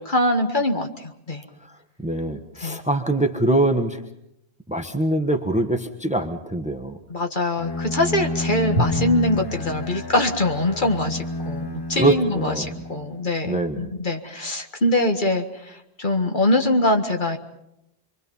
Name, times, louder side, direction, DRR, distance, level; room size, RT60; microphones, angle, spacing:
voice 1, 0.0-1.4 2.6-2.8 7.1-17.4, left 1 dB, 45° left, 4 dB, 1.9 m, -23 dB
voice 2, 2.0-4.0 4.7-7.0 12.0-12.7 13.4-13.9, right 2 dB, 5° right, 6 dB, 1.4 m, -23 dB
Bowed string instrument, 7.6-13.4, left 2 dB, 25° left, 0.8 m, -30 dB
Drum, 8.8-11.7, left 1 dB, 70° left, 5.5 m, -31 dB
27.5 x 23.5 x 5.5 m, 0.83 s
omnidirectional pair, 1.1 m